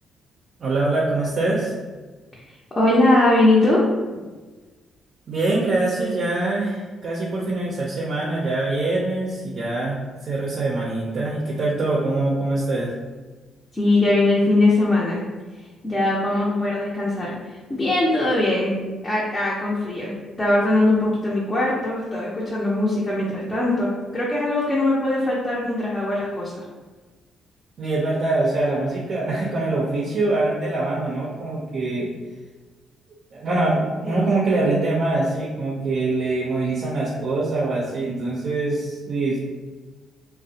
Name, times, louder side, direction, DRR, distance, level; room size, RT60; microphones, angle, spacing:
voice 1, 0.6-1.7 5.3-10.0 10.2-12.9 27.8-32.1 33.3-39.4, right 2 dB, 55° right, -4 dB, 0.4 m, -24 dB
voice 2, 2.8-3.8 13.7-15.2 15.8-18.8 19.0-20.1 20.4-26.6 34.0-34.3, left 2 dB, 25° left, -6 dB, 0.5 m, -21 dB
2.5 x 2.0 x 2.7 m, 1.3 s
cardioid pair, 90°, 0 cm